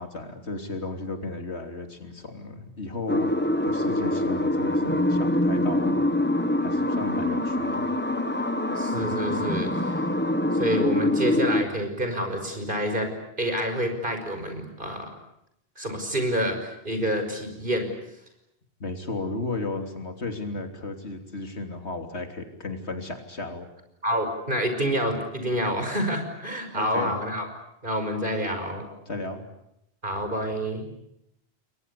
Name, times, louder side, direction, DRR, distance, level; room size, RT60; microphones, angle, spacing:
voice 1, 0.0-6.0 6.6-7.9 18.8-23.7 26.7-27.1 29.1-29.4, left 3 dB, 90° left, 5 dB, 3.5 m, -34 dB
sound 1, 3.1-11.6, left 1 dB, 10° left, 1.4 m, -25 dB
voice 2, 8.8-10.1 10.5-13.1 13.4-15.1 15.8-17.9 24.0-27.5 27.8-28.9 30.0-30.9, equal, 50° right, 6 dB, 5.8 m, -28 dB
30.0 x 22.5 x 8.4 m, 0.81 s
omnidirectional pair, 1.1 m